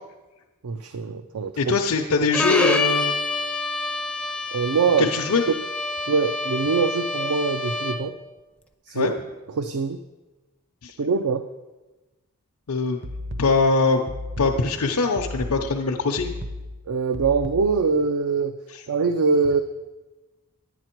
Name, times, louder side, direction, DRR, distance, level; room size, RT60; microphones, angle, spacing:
voice 1, 0.6-1.8 4.5-5.1 6.1-8.1 8.9-9.1 9.6-10.0 11.0-11.5 16.9-18.5 18.9-19.6, right 4 dB, 85° right, 9 dB, 0.5 m, -23 dB
voice 2, 1.6-3.2 5.0-5.4 8.9-9.1 10.8-11.0 12.7-13.0 13.4-14.0 14.4-16.3 18.7-18.8, left 4 dB, 90° left, 0 dB, 0.7 m, -22 dB
Bowed string instrument, 2.3-8.2, left 2 dB, 5° left, 0.4 m, -27 dB
sound 1, 13.0-18.0, left 1 dB, 55° right, 0.8 m, -35 dB
10.5 x 9.2 x 4.5 m, 1.1 s
head